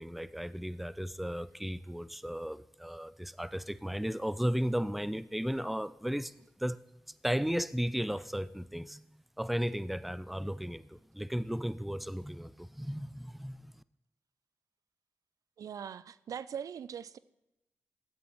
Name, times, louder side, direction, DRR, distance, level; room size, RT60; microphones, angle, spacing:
voice 1, 0.0-6.3 6.6-6.8 7.2-9.0 9.4-13.6, equal, ahead, 0.4 m, -35 dB
voice 2, 15.6-17.2, right 8 dB, 75° right, 0.4 m, -41 dB
13.5 x 8.5 x 3.1 m
cardioid pair, 50°, 6 cm